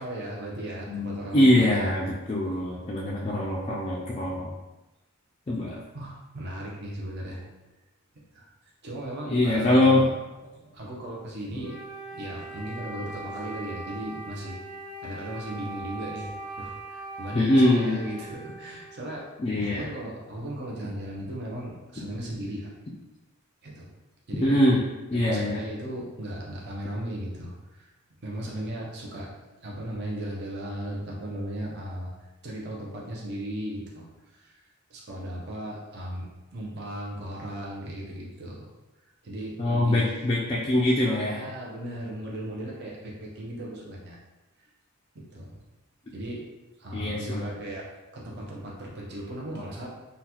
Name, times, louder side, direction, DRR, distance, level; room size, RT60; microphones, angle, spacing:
voice 1, 0.0-1.9 5.9-7.4 8.1-8.5 8.8-10.1 10.5-11.8 12.1-14.6 15.0-16.3 16.6-19.3 19.5-22.7 23.6-23.9 24.3-24.6 25.1-27.9 28.2-29.3 29.6-32.1 32.4-34.6 34.9-38.7 39.2-40.1 40.7-40.8 41.1-44.2 45.1-45.6 46.1-46.5 46.8-49.9, right 1 dB, 50° right, -3 dB, 0.7 m, -36 dB
voice 2, 0.9-4.5 5.5-5.8 9.3-10.0 17.3-18.0 19.4-19.8 24.4-24.8 25.1-25.6 39.6-41.4 46.9-47.5, left 1 dB, 30° left, -5 dB, 0.3 m, -23 dB
Wind instrument woodwind instrument, 11.6-19.3, right 2 dB, 15° right, 1.0 m, -40 dB
3.8 x 2.2 x 2.8 m, 1.1 s
head